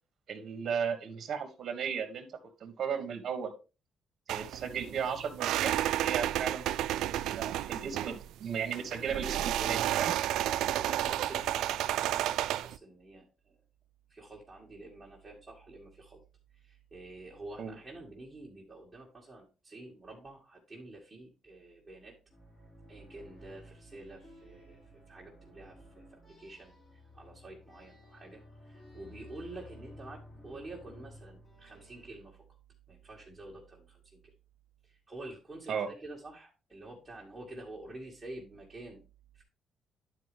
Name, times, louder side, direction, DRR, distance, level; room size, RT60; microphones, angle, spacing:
voice 1, 0.3-2.3 2.6-3.5 4.3-5.7 6.0-10.1 17.6-17.8 35.7-35.9, right 7 dB, 60° right, 8 dB, 1.5 m, -35 dB
sound 1, 4.3-12.8, right 13 dB, 85° right, 0.3 m, -31 dB
voice 2, 10.7-13.5 14.1-16.2 16.5-22.2 22.9-24.8 25.1-26.7 27.1-32.4 32.9-34.2 34.8-39.0 39.3-39.4, right 2 dB, 15° right, -3 dB, 2.1 m, -48 dB
sound 2, 22.3-32.1, left 2 dB, 20° left, 3.6 m, -54 dB
10.5 x 4.9 x 3.4 m, 0.31 s
cardioid pair, 90°, 0 cm